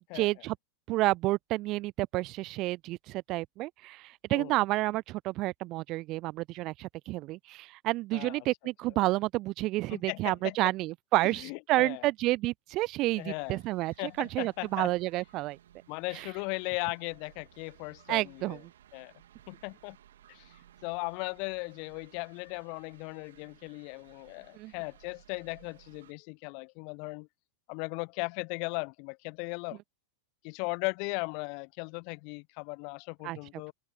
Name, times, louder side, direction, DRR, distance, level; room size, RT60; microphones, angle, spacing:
voice 1, 0.1-0.6 0.9-15.6 16.2-16.3 18.1-18.6 24.6-24.7 33.2-33.4, right 19 dB, 40° right, 0.4 m, -30 dB
voice 2, 8.1-8.4 9.9-10.7 11.4-12.1 13.2-13.6 14.0-14.9 15.9-18.6 18.9-19.1 19.5-20.0 20.3-20.5 20.8-27.3 27.7-29.8 30.4-33.7, left 37 dB, 45° left, 1.0 m, -37 dB
sound 1, 13.0-26.1, right 11 dB, 60° right, 2.9 m, -59 dB
open air
figure-of-eight pair, 90°, 0 cm